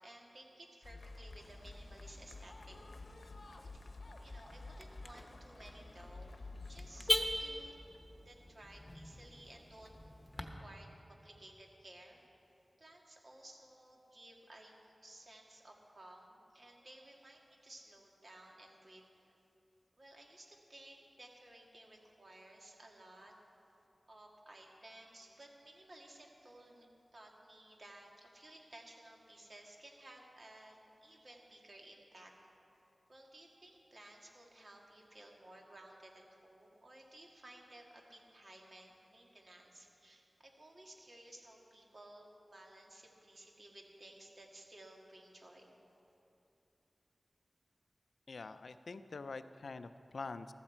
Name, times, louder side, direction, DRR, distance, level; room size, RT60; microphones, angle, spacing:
voice 1, 0.0-2.8 3.5-3.9 4.2-7.8 8.3-9.9 10.4-12.2 12.8-19.3 20.0-23.3 24.1-32.3 33.1-45.7, right 1 dB, 55° right, 0 dB, 1.9 m, -57 dB
sound 1, 0.8-7.4, left 3 dB, 70° left, 0.8 m, -51 dB
Car / Alarm, 1.3-10.4, left 1 dB, 30° left, 1.0 m, -43 dB
voice 2, 48.3-50.5, left 3 dB, 85° left, 11 dB, 0.4 m, -45 dB
14.5 x 13.5 x 4.4 m, 2.9 s
wide cardioid pair, 65°, 0 cm